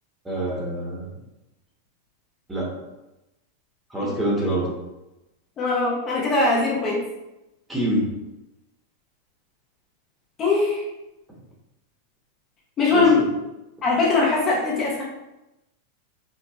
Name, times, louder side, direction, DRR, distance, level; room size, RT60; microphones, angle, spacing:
voice 1, 0.2-1.1 2.5-2.7 3.9-4.7 7.7-8.1 12.9-13.3, right 1 dB, 10° right, -4 dB, 1.0 m, -25 dB
voice 2, 5.6-7.0 10.4-10.8 12.8-13.2 13.8-15.0, left 3 dB, 30° left, -4 dB, 0.7 m, -21 dB
4.1 x 2.1 x 2.3 m, 0.96 s
hypercardioid pair, 125°, 0 cm